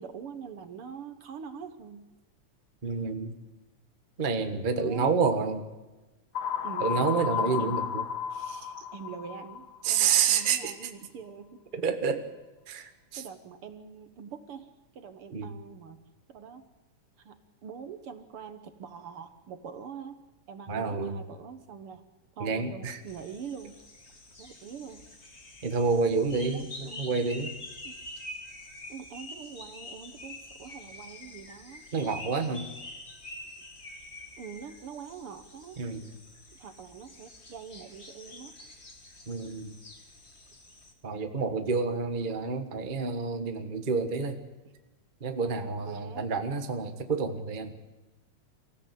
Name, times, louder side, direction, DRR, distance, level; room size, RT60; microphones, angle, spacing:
voice 1, 0.0-2.1 4.7-5.1 6.6-7.8 8.3-11.6 13.1-14.7 15.0-16.0 16.3-16.6 17.2-20.2 20.5-22.0 22.4-23.8 24.4-25.0 26.4-27.1 27.8-28.0 28.9-31.9 34.4-35.8 36.5-38.5 45.4-46.2, right 6 dB, 55° right, 9 dB, 1.8 m, -44 dB
voice 2, 2.8-3.3 4.2-5.7 6.8-8.0 9.8-10.9 11.7-12.2 12.7-13.2 15.3-15.5 20.7-21.1 22.4-23.0 25.6-27.5 31.9-32.7 35.8-36.1 39.3-39.7 41.0-44.4 45.2-47.7, right 5 dB, 30° right, 6 dB, 0.9 m, -29 dB
sound 1, 6.4-10.2, left 7 dB, 65° left, 2.2 m, -33 dB
sound 2, 23.1-40.9, left 2 dB, 25° left, 2.1 m, -46 dB
24.5 x 15.5 x 8.5 m, 1.1 s
omnidirectional pair, 3.3 m